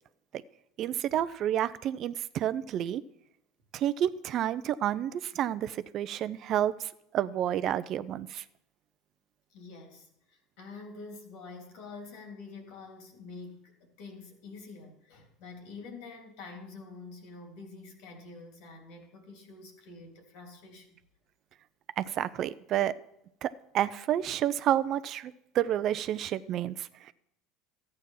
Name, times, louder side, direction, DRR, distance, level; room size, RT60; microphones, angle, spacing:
voice 1, 0.8-3.0 3.7-8.4 22.0-22.9 23.4-27.1, right 11 dB, 50° right, 0.7 m, -30 dB
voice 2, 9.5-21.0, left 3 dB, 70° left, 3.4 m, -47 dB
14.0 x 9.0 x 5.8 m
hypercardioid pair, 80°, 0 cm